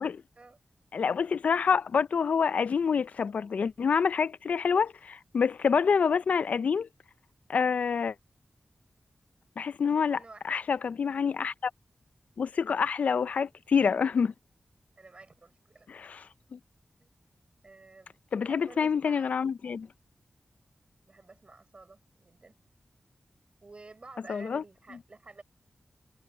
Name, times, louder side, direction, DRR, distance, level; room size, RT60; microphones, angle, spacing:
voice 1, 0.9-6.9 7.5-8.1 9.6-10.2 10.4-11.7 12.4-14.3 15.9-16.6 18.3-19.9 24.3-24.6, left 6 dB, 80° left, 0.4 m, -27 dB
voice 2, 9.9-10.6 11.0-11.2 15.0-15.9 17.0-17.1 17.6-19.4 21.1-22.6 23.6-25.4, right 3 dB, 50° right, 5.4 m, -52 dB
cardioid pair, 50°, 2 cm